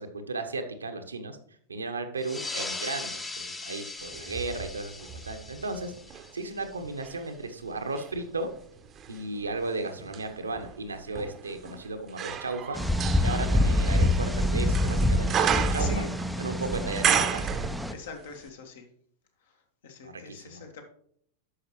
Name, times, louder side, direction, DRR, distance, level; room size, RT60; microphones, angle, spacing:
voice 1, 0.0-1.4 1.7-5.9 6.3-8.5 9.1-12.8 13.2-16.1 16.4-17.5 20.0-20.6, right 3 dB, 75° right, 6 dB, 0.9 m, -35 dB
sound 1, 2.2-7.3, left 2 dB, 15° left, 0.9 m, -39 dB
sound 2, 4.1-6.3 6.8-18.2 18.5-18.6, right 8 dB, 30° right, 0.8 m, -33 dB
sound 3, 12.8-17.9, left 1 dB, ahead, 0.5 m, -26 dB
voice 2, 15.8-16.1 17.9-18.9 19.8-20.8, left 6 dB, 60° left, 5 dB, 1.6 m, -42 dB
9.8 x 6.5 x 3.1 m, 0.63 s
figure-of-eight pair, 90°, 0 cm